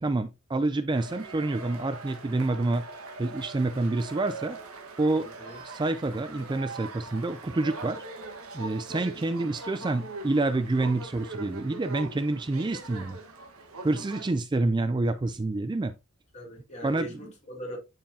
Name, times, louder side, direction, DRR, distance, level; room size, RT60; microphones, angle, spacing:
voice 1, 0.0-2.8 3.2-4.6 5.0-5.3 5.6-8.0 8.5-13.2 13.8-15.9 16.8-17.2, right 2 dB, 20° right, 0.3 m, -28 dB
sound 1, 0.9-14.3, right 3 dB, 80° right, 1.4 m, -42 dB
voice 2, 5.2-5.6 16.3-17.8, right 1 dB, 30° left, 3.3 m, -41 dB
10.5 x 4.8 x 2.7 m
head